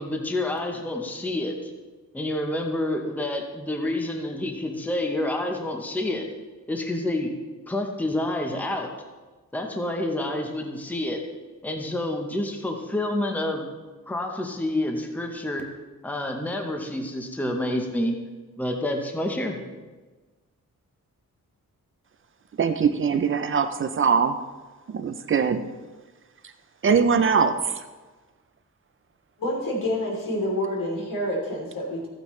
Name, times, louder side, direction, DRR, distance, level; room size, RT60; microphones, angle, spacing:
voice 1, 0.0-1.7 2.1-6.3 6.7-7.3 7.7-8.9 9.5-11.2 11.6-13.6 14.1-15.7 16.0-18.1 18.6-19.6, left 1 dB, 5° left, 3 dB, 0.8 m, -28 dB
voice 2, 22.6-24.4 24.9-25.6 26.8-27.9, right 6 dB, 40° right, 9 dB, 0.5 m, -22 dB
voice 3, 29.4-32.1, left 1 dB, 80° left, -2 dB, 3.2 m, -28 dB
14.5 x 8.9 x 3.1 m, 1.3 s
wide cardioid pair, 180°, 33 cm